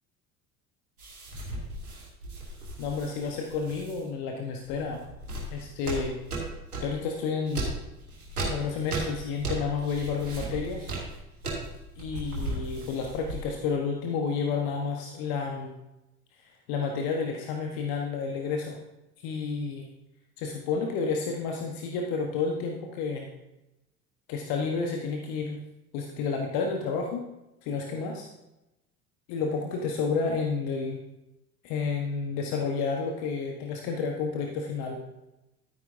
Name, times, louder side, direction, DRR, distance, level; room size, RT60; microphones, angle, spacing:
sound 1, 1.0-4.0 4.6-7.0 7.5-13.6, right 2 dB, 85° right, 2.7 m, -36 dB
voice 1, 2.8-5.0 5.5-6.1 6.8-7.7 8.5-10.9 12.0-15.7 16.7-18.8 19.2-19.8 20.4-23.3 24.3-25.6 25.9-27.2 27.6-28.3 29.3-31.0 31.6-35.0, left 5 dB, 55° left, 2 dB, 1.3 m, -30 dB
12.5 x 9.4 x 2.7 m, 0.94 s
figure-of-eight pair, 65°, 43 cm